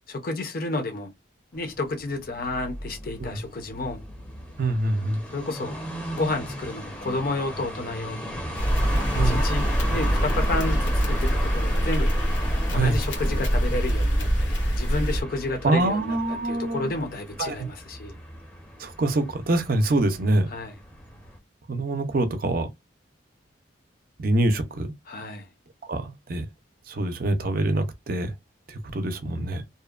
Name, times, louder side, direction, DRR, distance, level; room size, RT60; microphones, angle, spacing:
voice 1, 0.1-1.1 1.5-4.0 5.3-5.8 6.1-8.2 9.1-9.6 9.9-12.1 12.7-18.1 20.5-20.7 25.1-25.5, left 2 dB, 45° left, 0.6 m, -31 dB
sound 1, 1.5-21.4, equal, 5° left, 0.6 m, -36 dB
voice 2, 4.6-5.2 9.1-9.4 12.7-13.0 15.6-16.9 17.4-17.6 18.8-20.5 21.7-22.7 24.2-24.9 25.9-26.5 26.9-28.3 28.7-29.6, right 2 dB, 45° right, 0.5 m, -25 dB
sound 2, 8.5-15.2, equal, 70° left, 0.9 m, -24 dB
2.7 x 2.1 x 2.3 m
head